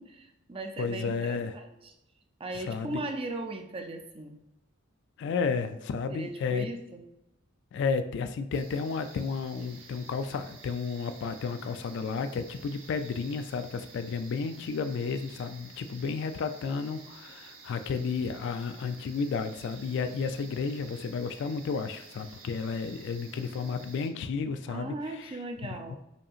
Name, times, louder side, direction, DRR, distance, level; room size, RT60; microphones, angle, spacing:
voice 1, 0.0-1.9 2.4-4.4 6.1-7.0 24.7-26.0, right 2 dB, 25° right, 4 dB, 0.4 m, -38 dB
voice 2, 0.8-1.5 2.5-3.0 5.2-6.7 7.7-25.3 25.6-26.0, left 5 dB, 60° left, 9 dB, 0.3 m, -32 dB
sound 1, 8.5-24.1, right 4 dB, 75° right, 0.8 m, -51 dB
5.1 x 2.8 x 2.4 m, 0.88 s
head